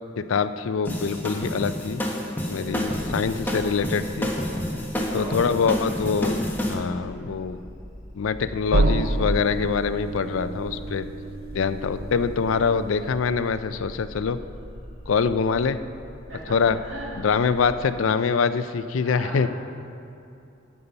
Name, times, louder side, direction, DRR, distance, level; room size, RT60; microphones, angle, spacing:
voice 1, 0.2-2.0 2.5-4.3 5.1-7.6 8.2-11.1 11.5-14.4 15.1-15.8 16.5-16.8 17.2-19.5, left 5 dB, 90° left, 12 dB, 0.4 m, -24 dB
sound 1, 0.8-6.7, equal, 10° left, 1.2 m, -28 dB
sound 2, 2.6-17.9, equal, 40° left, 1.4 m, -43 dB
voice 2, 5.1-5.7 16.3-17.3 19.0-19.5, right 1 dB, 70° right, -4 dB, 2.4 m, -37 dB
sound 3, 8.7-13.4, right 2 dB, 50° right, 0.6 m, -28 dB
14.5 x 5.5 x 5.5 m, 2.8 s
head